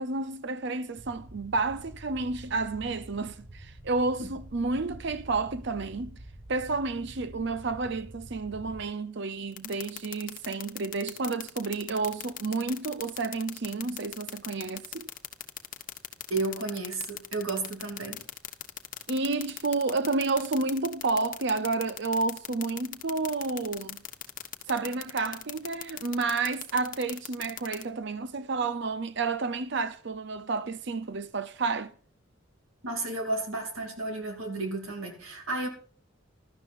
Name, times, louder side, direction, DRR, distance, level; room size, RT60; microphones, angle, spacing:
voice 1, 0.0-6.2 6.5-15.1 19.1-24.0 24.7-31.9, right 3 dB, 60° right, 0.6 m, -30 dB
sound 1, 1.0-8.9, right 1 dB, 35° right, 1.7 m, -47 dB
sound 2, 9.6-27.8, left 12 dB, 40° left, 1.0 m, -37 dB
voice 2, 16.3-18.2 32.8-35.7, right 2 dB, 90° right, 2.8 m, -32 dB
15.5 x 12.5 x 2.6 m
head